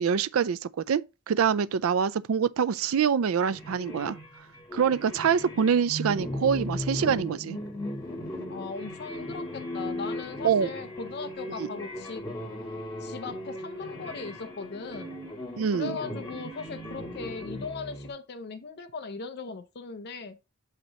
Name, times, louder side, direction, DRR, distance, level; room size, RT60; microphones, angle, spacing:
voice 1, 0.0-4.2 4.7-7.6 10.4-10.7 11.6-11.7 15.6-15.9, right 7 dB, 80° right, 0.4 m, -25 dB
sound 1, 3.5-18.1, left 1 dB, 20° left, 2.1 m, -37 dB
voice 2, 8.5-12.2 13.0-15.1 15.7-20.4, left 4 dB, 50° left, 0.5 m, -38 dB
8.1 x 2.9 x 5.5 m
head